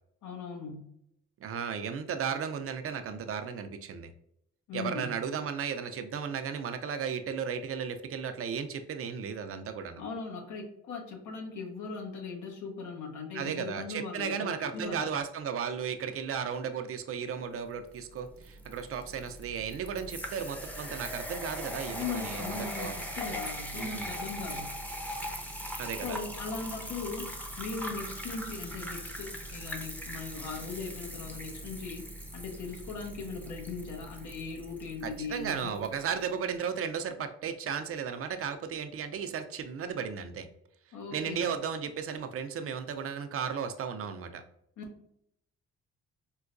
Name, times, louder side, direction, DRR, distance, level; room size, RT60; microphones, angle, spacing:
voice 1, 0.2-0.9 4.7-5.2 10.0-15.0 21.9-24.8 26.0-32.1 32.3-35.7 40.9-41.5 44.8-44.9, left 4 dB, 80° left, 1 dB, 1.0 m, -39 dB
voice 2, 1.4-4.1 4.7-10.0 13.3-22.9 23.7-24.1 25.8-26.2 35.0-40.5 41.1-44.4, right 7 dB, 50° right, 8 dB, 0.5 m, -35 dB
sound 1, 17.9-35.9, equal, 5° left, 0.6 m, -40 dB
4.6 x 2.2 x 2.5 m, 0.76 s
cardioid pair, 90°, 30 cm